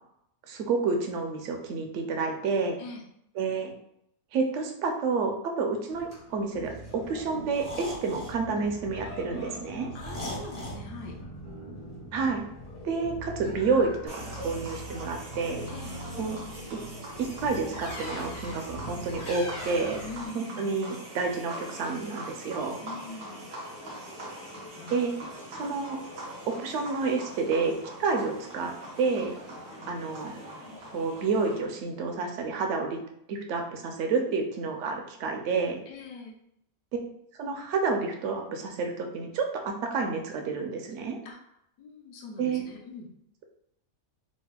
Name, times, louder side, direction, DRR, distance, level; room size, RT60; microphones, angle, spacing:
voice 1, 0.5-2.8 3.4-3.7 4.3-9.9 12.1-12.4 12.8-15.7 16.2-16.4 16.7-16.8 17.2-20.0 20.3-22.8 24.9-25.1 25.5-26.0 26.5-27.7 28.0-29.3 29.9-30.3 30.9-33.0 33.3-35.8 37.4-41.2 42.4-42.6, right 4 dB, 70° right, 3 dB, 0.7 m, -29 dB
sound 1, 5.9-20.3, equal, 35° left, 0.5 m, -41 dB
voice 2, 9.9-11.2 15.7-15.9 20.0-20.7 22.8-23.5 24.7-25.0 34.3-34.4 35.9-36.4 41.2-41.4 41.8-43.1, left 3 dB, 80° left, 0 dB, 1.1 m, -43 dB
sound 2, 14.1-31.6, right 1 dB, 90° right, 1.5 m, -42 dB
4.1 x 2.0 x 2.2 m, 0.76 s
omnidirectional pair, 1.6 m